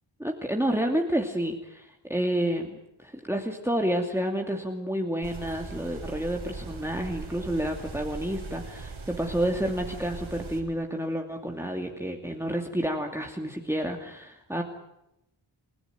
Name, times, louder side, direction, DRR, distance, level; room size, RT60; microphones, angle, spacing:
voice 1, 0.2-14.6, right 1 dB, 5° right, 2 dB, 2.6 m, -29 dB
sound 1, 5.2-10.6, right 3 dB, 80° right, 6.2 m, -40 dB
28.5 x 17.0 x 9.2 m, 0.84 s
wide cardioid pair, 100°, 47 cm